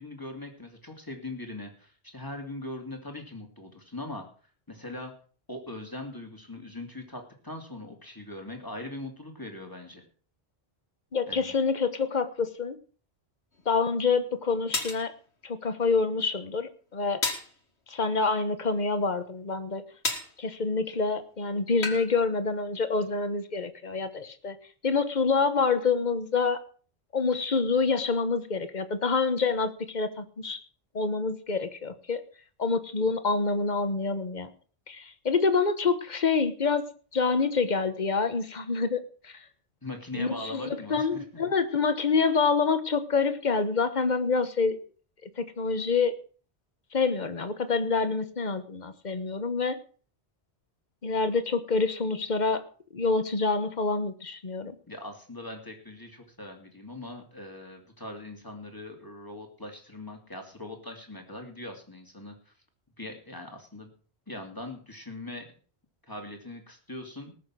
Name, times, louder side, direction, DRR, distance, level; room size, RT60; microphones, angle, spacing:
voice 1, 0.0-4.3 4.7-5.1 5.5-10.1 11.3-11.5 39.8-41.2 54.9-62.5 63.0-63.9 64.3-65.5 66.0-67.3, left 1 dB, 20° left, 3 dB, 2.6 m, -41 dB
voice 2, 11.1-12.8 13.7-15.1 15.4-17.2 17.9-19.8 20.4-24.6 24.8-26.6 27.1-30.6 30.9-32.2 32.6-34.5 34.9-36.8 37.1-39.3 40.1-44.8 45.4-46.1 46.9-49.8 51.0-52.6 52.9-54.7, left 4 dB, 45° left, 11 dB, 1.3 m, -27 dB
sound 1, 13.6-13.7 14.7-15.0 17.2-17.5 20.0-20.3 21.8-22.1, left 3 dB, 85° left, 2.3 m, -30 dB
19.0 x 6.7 x 6.2 m, 0.42 s
omnidirectional pair, 1.1 m